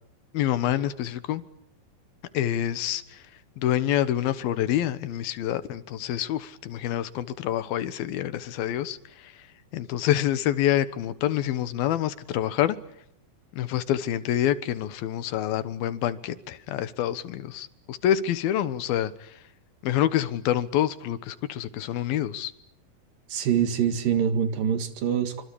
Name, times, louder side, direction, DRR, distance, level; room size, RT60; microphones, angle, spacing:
voice 1, 0.3-1.4 2.3-3.3 3.6-9.5 9.7-12.8 13.5-19.4 19.8-22.5, left 11 dB, 80° left, 3.1 m, -27 dB
voice 2, 23.3-25.4, right 8 dB, 70° right, 3.6 m, -25 dB
26.0 x 26.0 x 8.6 m
omnidirectional pair, 4.2 m